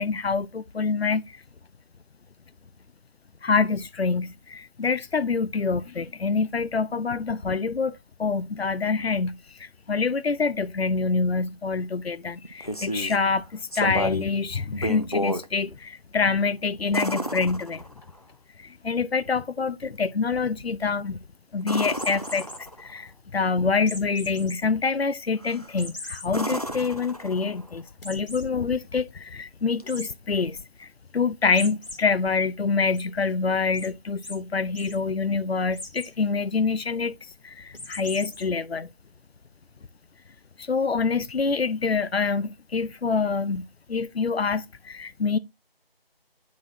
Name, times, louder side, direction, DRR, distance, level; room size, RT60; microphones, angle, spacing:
voice 1, 0.0-1.4 3.4-17.8 18.6-21.2 21.5-22.5 22.8-37.2 37.4-38.9 40.6-45.4, left 4 dB, 85° left, 0.6 m, -26 dB
sound 1, 12.4-13.2 13.7-14.3 14.7-15.5 16.9-18.2 21.6-22.9 25.4-25.8 26.3-27.7 29.8-29.9, equal, 40° left, 0.5 m, -31 dB
sound 2, 22.0-22.6 23.9-24.6 25.0-25.1 25.8-26.3 26.8-26.9 27.1-27.2 28.0-28.5 29.9-30.1 31.5-32.0 32.4-33.0 33.7-33.9 34.2-34.4 34.6-35.0 35.7-36.1 37.7-38.4, left 1 dB, 65° left, 2.1 m, -39 dB
9.5 x 4.1 x 2.6 m
figure-of-eight pair, 175°, 30 cm